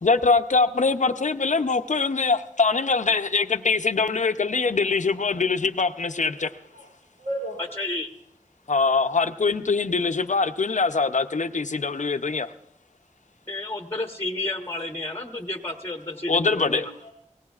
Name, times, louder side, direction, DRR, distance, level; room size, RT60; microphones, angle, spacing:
voice 1, 0.0-6.5 8.7-12.5 16.3-16.9, left 4 dB, 70° left, 0.6 m, -23 dB
voice 2, 6.3-6.9 7.2-7.6 16.1-16.5 16.8-17.1, right 1 dB, 75° right, 3.3 m, -36 dB
voice 3, 7.8-8.1 13.5-16.9, left 2 dB, 20° left, 1.1 m, -31 dB
23.5 x 17.5 x 2.4 m
wide cardioid pair, 45°, 13 cm